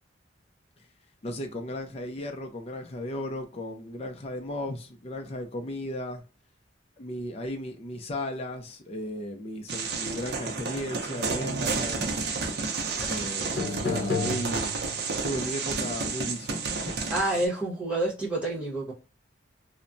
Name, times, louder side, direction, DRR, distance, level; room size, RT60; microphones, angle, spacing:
voice 1, 1.2-6.2 7.0-12.2 13.1-14.7 15.2-16.9, left 1 dB, 30° left, 0.4 m, -35 dB
sound 1, 9.7-17.5, right 4 dB, 55° right, 0.5 m, -31 dB
sound 2, 13.0-13.2 13.6-15.2, left 3 dB, 55° left, 0.9 m, -31 dB
voice 2, 17.1-18.9, right 2 dB, 5° right, 1.1 m, -28 dB
3.1 x 2.1 x 2.5 m
head